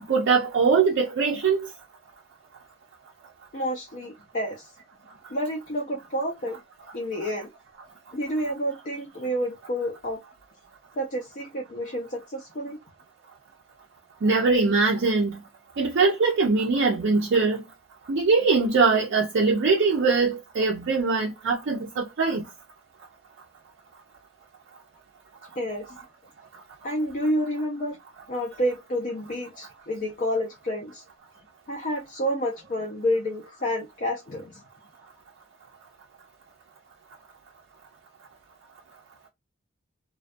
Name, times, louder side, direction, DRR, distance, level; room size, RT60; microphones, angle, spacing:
voice 1, 0.1-1.7 14.2-15.4 15.8-17.6 18.1-22.4, right 4 dB, 55° right, 0.4 m, -22 dB
voice 2, 3.5-4.7 5.3-6.6 6.9-7.5 8.1-10.2 11.0-12.8 25.6-26.0 26.8-28.0 28.3-31.0 31.7-34.6, equal, 40° left, 0.4 m, -29 dB
2.2 x 2.2 x 2.5 m
head